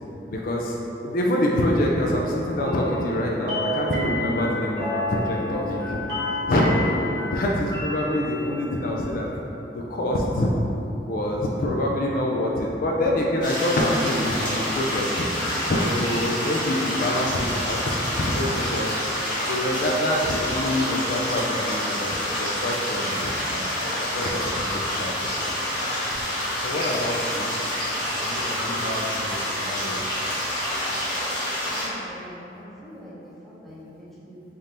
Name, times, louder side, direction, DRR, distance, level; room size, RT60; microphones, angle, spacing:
voice 1, 0.3-0.8 1.0-6.0 6.5-7.0 7.3-9.3 9.7-10.5 11.1-15.3 15.7-18.9 19.5-25.6 26.6-27.5 28.1-30.1, left 1 dB, 55° left, -2 dB, 0.4 m, -26 dB
sound 1, 2.6-8.6, left 1 dB, 70° right, 1.3 m, -30 dB
sound 2, 13.4-31.9, left 1 dB, 25° left, 1.1 m, -28 dB
voice 2, 31.7-34.4, equal, ahead, -9 dB, 0.8 m, -43 dB
3.5 x 2.5 x 4.2 m, 2.9 s
head